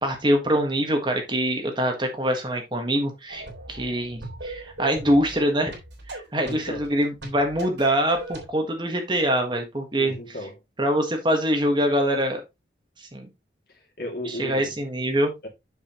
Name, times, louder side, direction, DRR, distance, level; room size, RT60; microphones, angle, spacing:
voice 1, 0.0-3.4 3.7-5.7 6.1-10.2 10.8-12.4 13.1-13.3 14.4-15.3, equal, 25° right, 1.5 m, -24 dB
sound 1, 3.3-8.5, right 2 dB, 80° right, 3.6 m, -40 dB
voice 2, 6.4-6.9 10.0-10.6 13.7-14.8 15.4-15.5, left 1 dB, 55° left, 2.5 m, -35 dB
7.3 x 6.7 x 3.0 m
head